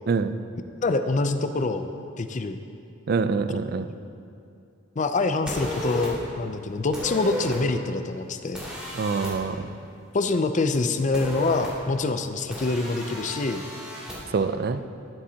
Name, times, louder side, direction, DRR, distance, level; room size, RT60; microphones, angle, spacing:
voice 1, 0.8-1.9 2.2-2.6 5.0-8.6 10.1-13.7, left 3 dB, 40° left, 8 dB, 0.5 m, -25 dB
voice 2, 3.1-3.9 8.9-9.6 14.3-14.8, right 4 dB, 50° right, 11 dB, 0.4 m, -25 dB
sound 1, 5.5-6.1 6.9-7.6 8.5-9.3 11.1-11.7 12.5-14.2, equal, 5° right, 2.6 m, -33 dB
12.5 x 10.0 x 2.8 m, 2.5 s
head